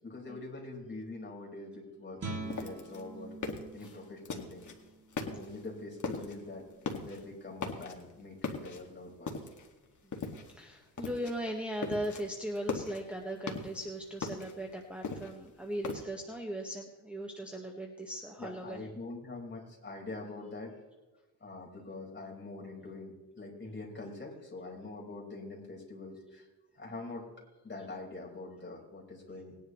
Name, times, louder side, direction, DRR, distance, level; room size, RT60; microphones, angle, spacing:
voice 1, 0.0-3.3 3.7-4.7 5.2-6.6 7.0-9.4 18.4-20.7 21.4-26.5 26.8-27.3 27.6-29.6, left 2 dB, 30° left, -1 dB, 4.8 m, -44 dB
Guitar, 2.2-7.7, right 3 dB, 35° right, 2.5 m, -46 dB
sound 1, 2.5-4.8 5.1-5.7 6.0-6.4 6.7-7.2 7.6-8.1 8.4-9.7 10.1-10.6 11.0-11.4 11.6-12.2 12.6-13.8 14.2-16.0, left 4 dB, 45° left, 2.1 m, -39 dB
voice 2, 10.2-18.8, equal, 5° right, 1 dB, 1.5 m, -38 dB
20.0 x 10.5 x 3.2 m, 1.2 s
cardioid pair, 100°, 40 cm